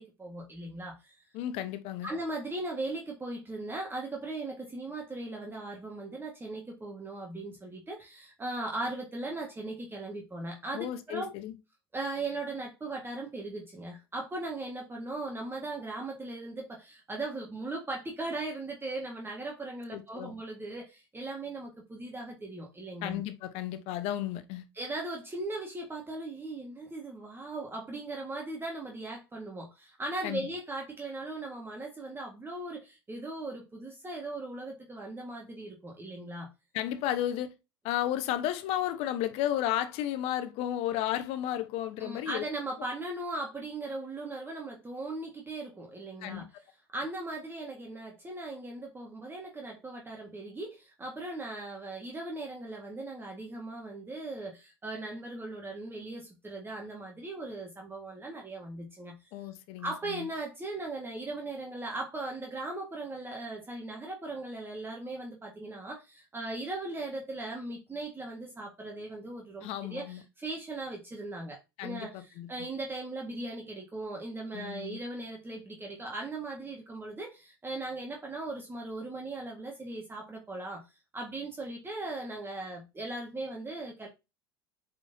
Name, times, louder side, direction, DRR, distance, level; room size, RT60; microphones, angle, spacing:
voice 1, 0.0-1.2 2.0-11.3 11.9-23.2 24.7-36.5 42.0-46.5 46.9-59.3 59.8-80.8 81.1-84.1, right 2 dB, 15° right, 1.7 m, -38 dB
voice 2, 1.3-2.1 10.7-11.5 19.9-20.3 23.0-24.6 30.2-30.5 36.7-37.5 37.8-42.4 46.2-46.5 59.3-60.3 69.6-70.2 71.8-72.5 74.5-75.0, left 12 dB, 55° left, 1.0 m, -33 dB
8.2 x 4.3 x 2.8 m
hypercardioid pair, 75°, 12 cm